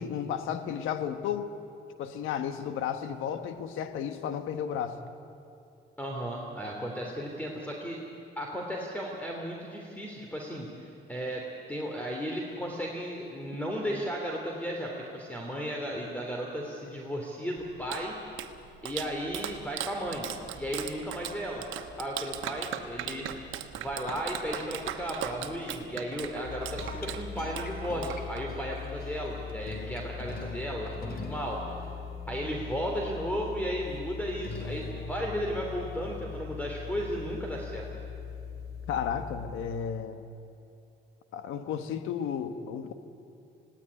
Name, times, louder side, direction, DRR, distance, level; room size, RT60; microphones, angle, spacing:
voice 1, 0.0-1.5 2.0-5.0 38.9-40.2 41.3-42.9, left 8 dB, 90° left, 9 dB, 1.4 m, -33 dB
voice 2, 6.0-8.0 8.4-18.2 18.8-20.3 20.6-21.6 22.0-23.3 23.7-31.6 32.3-37.9, equal, 5° left, -1 dB, 3.1 m, -35 dB
Clapping, 17.6-28.7, right 10 dB, 90° right, 1.2 m, -39 dB
sound 1, 26.4-40.0, left 5 dB, 50° left, 3.0 m, -40 dB
19.5 x 17.0 x 9.8 m, 2.7 s
cardioid pair, 90°, 20 cm